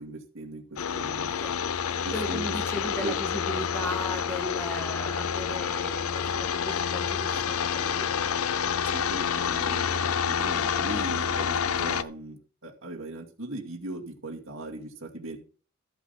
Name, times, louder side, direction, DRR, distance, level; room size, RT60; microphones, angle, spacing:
voice 1, 0.0-1.3 2.0-2.4 3.0-3.1 8.9-15.4, right 2 dB, 65° right, 1 dB, 2.4 m, -38 dB
sound 1, 0.8-12.0, left 7 dB, 85° left, 0.6 m, -28 dB
voice 2, 1.2-1.7 2.1-8.1 8.8-8.9, left 1 dB, 10° left, 4 dB, 1.7 m, -37 dB
14.0 x 8.0 x 4.1 m, 0.39 s
head